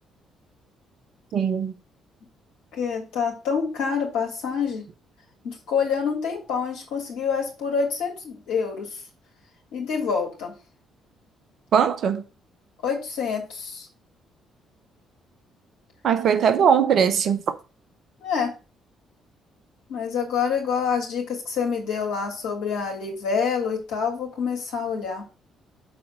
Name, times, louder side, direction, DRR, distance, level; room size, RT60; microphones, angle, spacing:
voice 1, 1.3-1.7 11.7-12.2 16.0-17.5, right 7 dB, 50° right, 0.8 m, -20 dB
voice 2, 2.7-4.8 5.4-8.9 9.7-10.5 12.8-13.9 18.2-18.5 19.9-25.2, left 6 dB, 65° left, 3.0 m, -27 dB
7.1 x 4.2 x 5.8 m
figure-of-eight pair, 45°, 0 cm